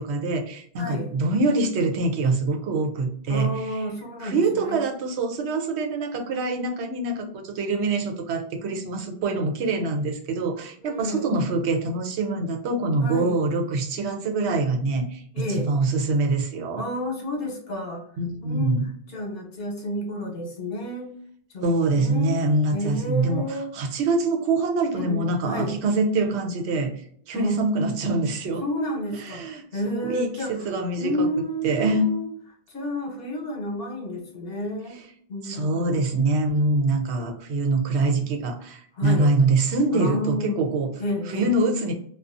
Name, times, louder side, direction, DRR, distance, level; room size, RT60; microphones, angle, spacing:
voice 1, 0.0-3.8 4.2-16.8 18.2-18.9 21.6-23.4 23.7-28.6 29.3-31.3 31.6-32.1 35.4-40.9 41.3-41.9, right 2 dB, 90° right, 3 dB, 0.9 m, -24 dB
voice 2, 0.8-1.1 3.3-4.8 10.8-11.3 13.0-13.3 15.3-15.7 16.8-18.0 18.4-18.8 19.1-21.1 21.5-22.4 22.7-23.7 24.9-25.8 27.3-27.6 28.6-30.7 31.0-32.3 32.7-35.0 35.3-36.2 39.0-39.3 39.9-40.6 41.0-41.5, left 1 dB, 65° left, 0 dB, 1.0 m, -30 dB
2.4 x 2.3 x 2.5 m, 0.62 s
omnidirectional pair, 1.1 m